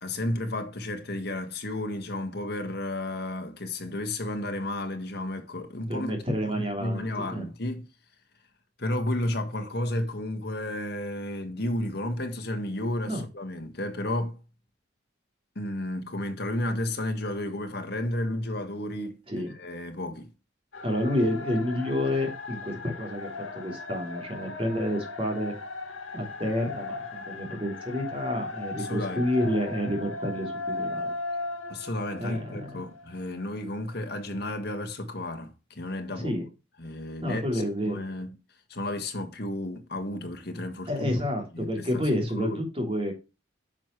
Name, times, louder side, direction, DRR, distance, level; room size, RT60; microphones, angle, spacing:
voice 1, 0.0-6.2 6.5-7.8 8.8-14.4 15.6-20.3 28.8-29.3 31.7-36.3 36.8-38.4 38.7-41.2 41.5-42.6, left 1 dB, 50° left, 1.7 m, -32 dB
voice 2, 5.9-7.4 13.0-13.2 19.3-19.5 20.8-25.5 26.1-31.1 32.2-32.8 36.1-36.5 37.2-38.0 40.9-43.1, equal, 30° right, 3.2 m, -29 dB
sound 1, 20.7-33.5, left 3 dB, 85° left, 2.2 m, -37 dB
9.9 x 6.1 x 3.2 m
head